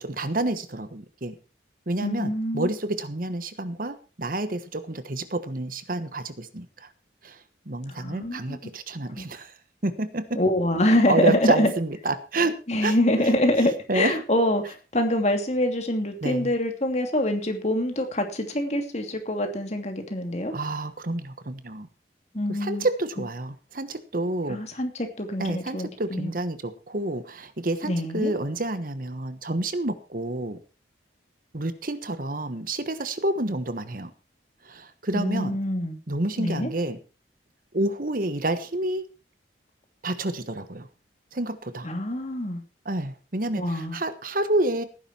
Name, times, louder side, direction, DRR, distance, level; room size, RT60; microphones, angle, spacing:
voice 1, 0.0-1.4 1.9-6.9 7.2-7.4 7.7-9.5 9.8-10.4 11.1-12.5 12.8-12.9 13.9-14.1 16.2-16.5 20.5-21.9 22.5-24.6 25.4-30.6 31.5-34.1 34.6-35.6 36.1-37.0 37.7-39.0 40.0-40.9 41.3-41.9 42.8-44.8, right 2 dB, 50° right, 12 dB, 1.3 m, -29 dB
voice 2, 2.0-2.7 7.9-8.6 9.1-9.3 10.3-11.7 12.7-20.5 22.3-22.8 24.5-26.3 27.8-28.3 35.1-36.0 36.4-36.7 41.8-42.6 43.5-44.0, left 1 dB, 40° left, 5 dB, 2.8 m, -25 dB
17.5 x 10.0 x 4.4 m, 0.34 s
head